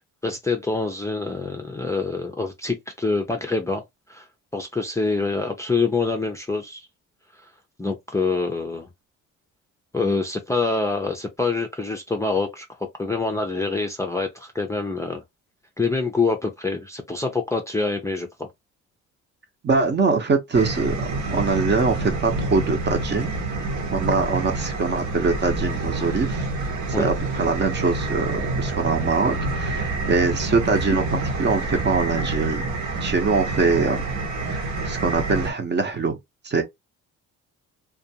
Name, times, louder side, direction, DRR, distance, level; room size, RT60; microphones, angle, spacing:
voice 1, 0.2-3.8 4.1-4.3 4.5-6.9 7.8-8.9 9.9-12.7 13.0-15.2 15.8-18.5 26.9-27.1, left 3 dB, 10° left, 0.5 m, -25 dB
voice 2, 19.6-21.0 21.3-23.4 23.9-26.5 26.9-32.6 33.0-34.0 34.5-36.2 36.4-36.6, right 4 dB, 35° right, 0.8 m, -23 dB
sound 1, 20.5-35.5, right 2 dB, 65° right, 1.0 m, -27 dB
2.4 x 2.3 x 2.8 m
cardioid pair, 95°, 31 cm